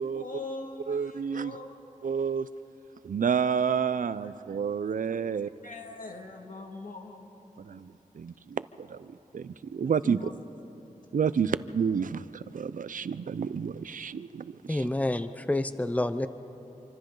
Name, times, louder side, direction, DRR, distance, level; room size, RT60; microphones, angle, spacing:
voice 1, 0.0-1.9 4.2-4.3 4.8-4.9 5.2-7.9 9.8-10.3, left 2 dB, 75° left, 3 dB, 2.0 m, -43 dB
voice 2, 0.9-1.6 2.0-2.5 3.0-5.5 7.6-10.3 11.1-14.9, right 6 dB, 75° right, 16 dB, 0.5 m, -30 dB
voice 3, 14.7-16.3, left 1 dB, 10° left, 11 dB, 0.7 m, -28 dB
27.0 x 25.5 x 3.9 m, 3.0 s
wide cardioid pair, 90°, 14 cm